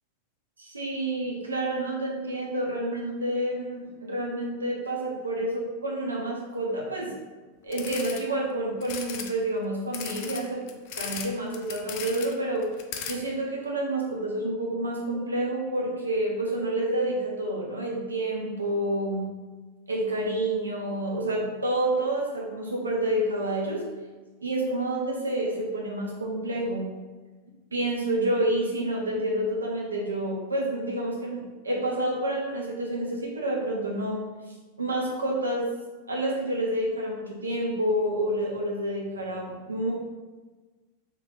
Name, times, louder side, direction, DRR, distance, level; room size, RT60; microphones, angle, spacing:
voice 1, 0.6-7.1 7.6-10.7 11.0-12.7 13.1-19.3 19.9-23.9 24.4-26.9 27.7-35.7 36.1-39.9, right 1 dB, 75° right, -2 dB, 0.8 m, -29 dB
sound 1, 7.7-8.2 8.8-9.3 9.9-11.3 11.5-12.3 12.6-13.1, left 8 dB, 45° left, 0.4 m, -36 dB
3.1 x 2.9 x 3.7 m, 1.3 s
figure-of-eight pair, 90°, 0 cm